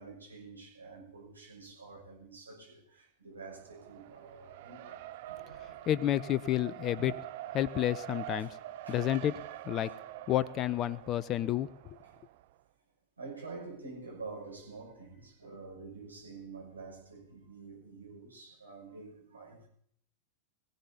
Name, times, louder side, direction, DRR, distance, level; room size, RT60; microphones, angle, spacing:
voice 1, 0.0-5.8 7.0-7.1 8.4-8.5 8.9-9.0 9.9-10.0 12.0-12.1 13.2-19.7, right 4 dB, 80° right, 5.7 m, -48 dB
Race car auto racing, 3.4-12.5, right 14 dB, 50° right, 0.5 m, -45 dB
voice 2, 5.9-7.1 7.5-8.6 8.9-9.3 9.6-9.9 10.3-12.0, left 12 dB, 35° left, 0.5 m, -30 dB
22.5 x 15.5 x 2.8 m
figure-of-eight pair, 90°, 0 cm